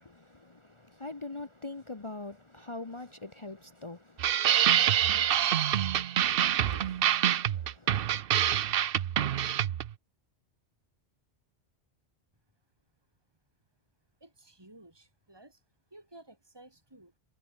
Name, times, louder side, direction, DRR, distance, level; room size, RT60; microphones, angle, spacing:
voice 1, 0.0-5.2 6.6-7.9, left 2 dB, 25° left, 1.1 m, -44 dB
sound 1, 4.2-9.9, right 10 dB, 60° right, 0.8 m, -26 dB
voice 2, 14.2-15.6 15.9-17.1, right 1 dB, 20° right, 4.1 m, -54 dB
omnidirectional pair, 1.2 m